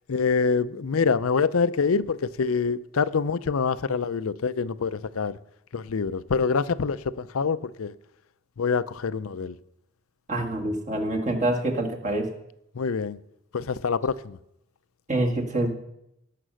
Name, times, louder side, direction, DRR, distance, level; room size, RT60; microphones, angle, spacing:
voice 1, 0.1-5.4 5.7-7.9 8.6-9.5 12.8-13.2 13.5-14.4, left 5 dB, 85° left, 0.5 m, -25 dB
voice 2, 10.3-12.3 15.1-15.7, right 1 dB, 35° right, 1.8 m, -26 dB
17.5 x 6.8 x 6.3 m
head